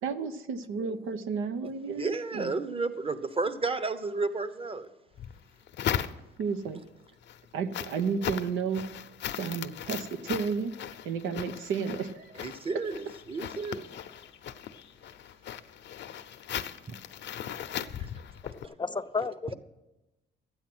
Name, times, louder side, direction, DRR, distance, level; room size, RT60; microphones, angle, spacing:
voice 1, 0.0-2.5 6.4-6.8 7.5-8.8 9.4-10.7 11.0-12.4, right 5 dB, 90° right, 0.9 m, -32 dB
voice 2, 2.0-4.9 12.4-13.9 16.9-17.0, right 3 dB, 30° right, 0.9 m, -32 dB
sound 1, 5.2-6.6 7.1-18.7, left 10 dB, 65° left, 0.7 m, -38 dB
voice 3, 18.4-19.5, left 4 dB, 25° left, 0.4 m, -33 dB
12.5 x 9.1 x 6.1 m
cardioid pair, 90°, 20 cm